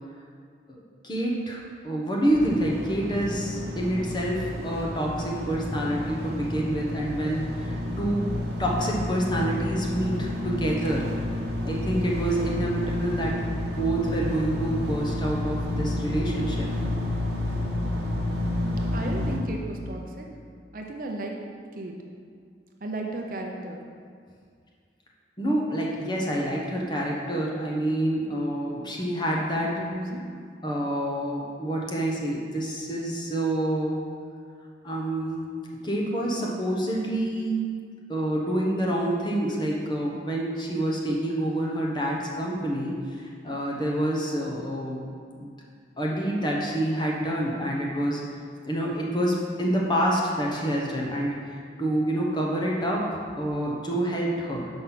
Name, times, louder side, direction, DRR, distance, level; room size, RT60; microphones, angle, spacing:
voice 1, 1.0-8.3 8.6-11.1 11.6-16.7 25.4-29.8 30.6-34.0 34.8-35.5 35.8-37.6 38.1-45.0 45.4-45.6 46.0-48.2 48.6-54.7, right 1 dB, 25° left, -3 dB, 1.0 m, -27 dB
sound 1, 2.3-19.4, left 1 dB, 70° right, 1.2 m, -30 dB
voice 2, 18.9-20.3 20.7-21.4 21.7-22.0 22.8-23.8 29.6-30.3, right 1 dB, 50° right, 1 dB, 0.7 m, -34 dB
5.9 x 5.3 x 5.8 m, 2.1 s
head